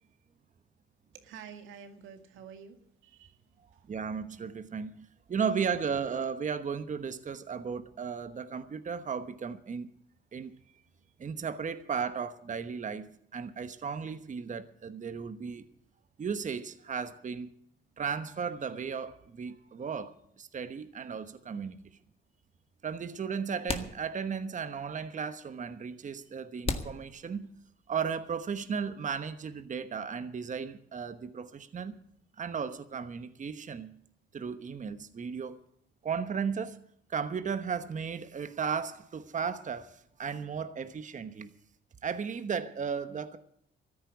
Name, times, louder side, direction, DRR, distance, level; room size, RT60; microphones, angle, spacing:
voice 1, 1.1-2.8 3.0-3.4 3.7-3.8, right 7 dB, 90° right, 2.1 m, -48 dB
voice 2, 3.9-9.9 10.3-10.5 11.2-15.7 16.2-17.5 18.0-21.8 22.8-27.5 27.9-32.0 32.4-34.0 34.3-35.6 36.0-36.8 37.1-41.5 42.0-43.4, right 6 dB, 40° right, 1.1 m, -35 dB
sound 1, 21.8-21.9 23.0-23.1 23.7-24.6 24.9-25.0 25.7-25.8 26.6-27.9, left 3 dB, 30° left, 1.8 m, -37 dB
14.0 x 10.0 x 8.2 m
cardioid pair, 90°, 20 cm